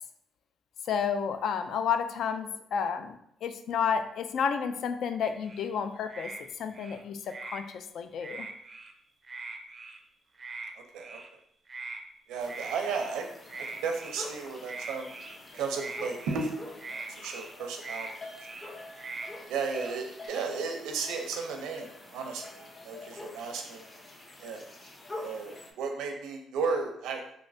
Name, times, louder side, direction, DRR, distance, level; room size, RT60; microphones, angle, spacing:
voice 1, 0.9-8.5, left 7 dB, 70° left, 9 dB, 0.3 m, -31 dB
sound 1, 5.2-5.7 6.1-6.4 6.7-7.6 8.2-8.9 9.2-10.0 10.4-10.7 11.0-11.3 11.7-12.0 12.4-13.2 13.5-14.3 14.7-15.4 15.7-16.5 16.8-17.5 17.8-18.1 18.4-18.7 19.0-19.3 19.6-20.3, right 3 dB, 35° right, 0.4 m, -42 dB
voice 2, 10.8-11.2 12.3-13.3 13.6-15.1 15.5-16.5 16.9-18.1 19.5-22.5 22.8-23.8 24.4-24.7 25.1-27.3, right 5 dB, 85° right, 3 dB, 0.5 m, -34 dB
sound 2, 12.4-25.7, left 2 dB, 25° left, 0.6 m, -46 dB
3.2 x 2.7 x 2.6 m, 0.73 s
cardioid pair, 90°, 0 cm